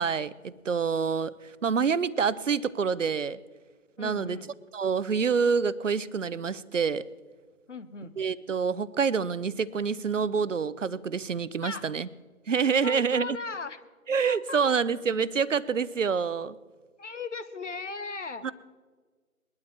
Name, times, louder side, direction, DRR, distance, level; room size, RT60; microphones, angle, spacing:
voice 1, 0.0-3.4 4.0-4.4 4.7-7.1 8.2-12.1 12.5-13.4 14.1-16.6 18.4-18.5, right 6 dB, 60° right, 17 dB, 0.7 m, -27 dB
voice 2, 4.0-4.5 7.7-8.1 11.6-11.9 12.8-13.8 14.3-14.6 17.0-18.5, left 4 dB, 55° left, 12 dB, 1.1 m, -37 dB
21.0 x 12.0 x 3.2 m, 1.4 s
figure-of-eight pair, 155°, 43 cm